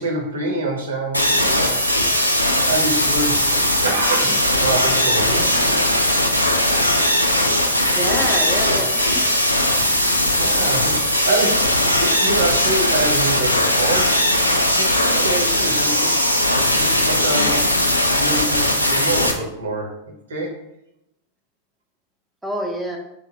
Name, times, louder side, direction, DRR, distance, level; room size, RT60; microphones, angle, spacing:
voice 1, 0.0-1.9 2.2-2.4 2.6-5.9 10.4-14.3 14.7-17.8 18.1-19.9 20.3-20.6, right 2 dB, 65° right, 1 dB, 0.7 m, -26 dB
sound 1, 1.1-19.3, left 1 dB, 90° left, 0.3 m, -19 dB
voice 2, 8.0-9.4 22.4-23.0, equal, 5° right, 0 dB, 0.5 m, -27 dB
3.1 x 2.2 x 3.9 m, 0.83 s
figure-of-eight pair, 90°, 0 cm